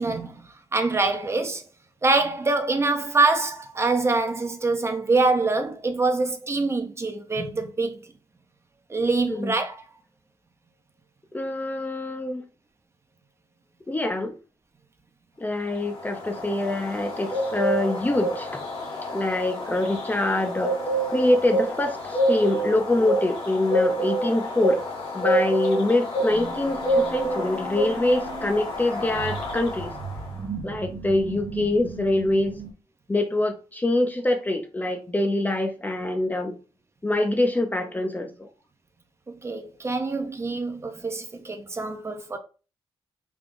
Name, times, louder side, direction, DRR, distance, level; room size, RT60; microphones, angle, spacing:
voice 1, 0.0-1.6 2.0-8.0 8.9-9.8 39.3-42.4, right 3 dB, 30° right, 0.6 m, -25 dB
voice 2, 11.3-12.4 13.9-14.3 15.4-18.6 19.1-20.8 21.1-24.8 25.1-29.9 30.6-32.5 33.1-36.6 37.0-38.5, left 1 dB, 15° left, 0.5 m, -25 dB
sound 1, 15.7-30.3, right 1 dB, 65° left, 1.4 m, -28 dB
sound 2, 26.3-32.7, right 5 dB, 70° right, 0.9 m, -37 dB
3.4 x 2.3 x 3.7 m
cardioid pair, 85°, 10 cm